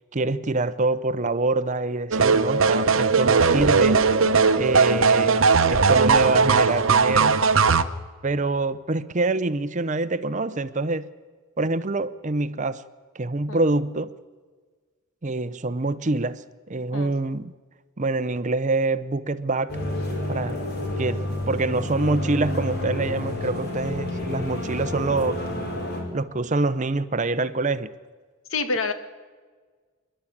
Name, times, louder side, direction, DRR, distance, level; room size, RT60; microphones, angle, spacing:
voice 1, 0.1-4.2 4.6-7.4 8.2-11.1 11.6-12.8 13.1-14.1 15.2-16.4 16.7-17.5 18.0-19.8 20.3-20.6 21.0-25.4 26.1-27.9, right 2 dB, 35° right, 0.7 m, -25 dB
sound 1, 2.1-7.8, right 4 dB, 70° right, 0.9 m, -18 dB
voice 2, 4.2-4.6 13.5-13.7 16.9-17.1 28.5-28.9, left 3 dB, 75° left, 1.9 m, -28 dB
sound 2, 19.7-26.0, left 1 dB, 50° left, 4.6 m, -29 dB
27.0 x 11.5 x 8.7 m
head